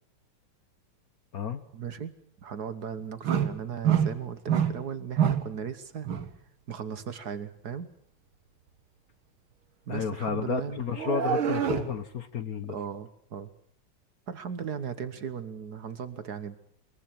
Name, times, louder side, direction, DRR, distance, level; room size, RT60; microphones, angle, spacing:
voice 1, 1.7-2.1 2.4-6.1 6.7-7.9 9.9-10.8 12.7-13.5 14.3-16.6, right 7 dB, 55° right, 12 dB, 1.6 m, -37 dB
sound 1, 3.2-3.6 3.8-4.1 4.5-4.8 5.2-5.5 6.0-6.3 10.9-11.9, right 9 dB, 75° right, 2.2 m, -26 dB
voice 2, 9.9-12.7, left 6 dB, 50° left, 11 dB, 1.4 m, -31 dB
22.5 x 22.0 x 7.6 m, 0.66 s
omnidirectional pair, 2.3 m